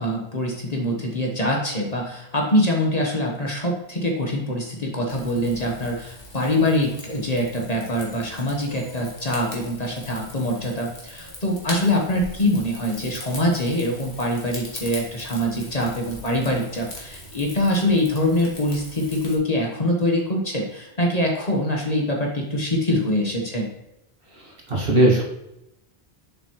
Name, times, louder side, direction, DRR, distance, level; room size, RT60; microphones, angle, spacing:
voice 1, 0.0-23.7, left 1 dB, 40° left, 0 dB, 1.2 m, -24 dB
Rain / Fire, 5.1-19.4, left 1 dB, 55° left, 1.8 m, -40 dB
voice 2, 24.4-25.2, right 1 dB, 55° right, -3 dB, 2.0 m, -19 dB
7.0 x 5.8 x 3.0 m, 0.87 s
omnidirectional pair, 1.1 m